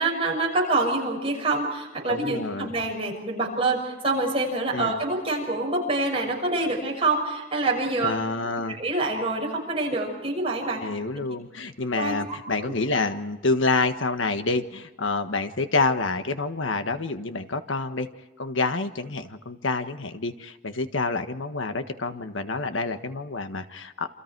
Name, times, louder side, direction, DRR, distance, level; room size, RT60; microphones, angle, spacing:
voice 1, 0.0-8.1 8.8-10.8 11.2-11.3 12.0-12.1 12.6-12.7, right 2 dB, 30° right, -1 dB, 6.5 m, -26 dB
voice 2, 2.1-2.7 4.7-5.0 8.0-8.8 10.8-18.1 18.4-24.1, left 3 dB, 80° left, 8 dB, 1.5 m, -28 dB
28.5 x 27.0 x 4.7 m, 1.1 s
head